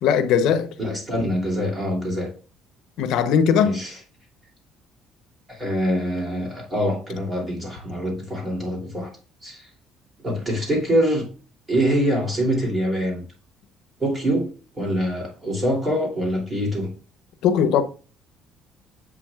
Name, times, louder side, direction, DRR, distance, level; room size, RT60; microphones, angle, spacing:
voice 1, 0.0-0.7 3.0-3.8 17.4-17.8, left 7 dB, 70° left, 0.8 m, -19 dB
voice 2, 0.8-2.3 3.6-4.0 5.5-9.1 9.4-9.7 10.2-11.2 11.7-13.2 14.0-14.5 14.7-16.9, equal, 15° right, 2.8 m, -24 dB
7.7 x 5.9 x 2.4 m
cardioid pair, 160°, 0 cm